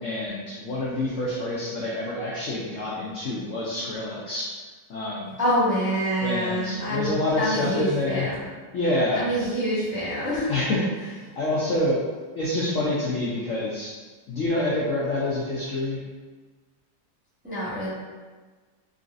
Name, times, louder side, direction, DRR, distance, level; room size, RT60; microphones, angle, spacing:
voice 1, 0.0-4.5 4.9-5.3 6.2-8.3 8.7-9.2 10.5-12.0 12.4-13.9 14.3-16.0, left 1 dB, 80° left, -6 dB, 0.7 m, -27 dB
voice 2, 5.4-8.4 9.2-10.5 17.4-17.9, equal, 5° right, -12 dB, 0.8 m, -26 dB
3.8 x 2.6 x 2.4 m, 1.4 s
omnidirectional pair, 2.0 m